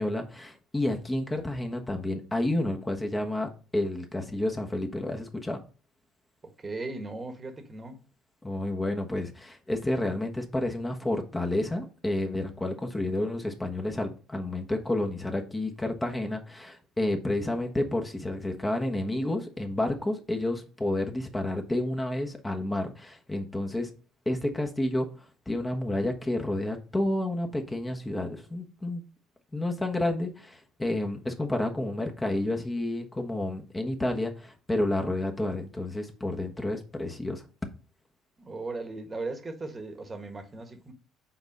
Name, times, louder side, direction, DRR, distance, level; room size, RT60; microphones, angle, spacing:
voice 1, 0.0-5.6 8.4-23.9 24.2-29.0 29.5-37.4, left 1 dB, 15° left, 1.2 m, -30 dB
voice 2, 6.4-8.0 38.4-40.9, right 3 dB, 30° right, 1.4 m, -37 dB
5.9 x 4.1 x 5.4 m
hypercardioid pair, 65°, 0 cm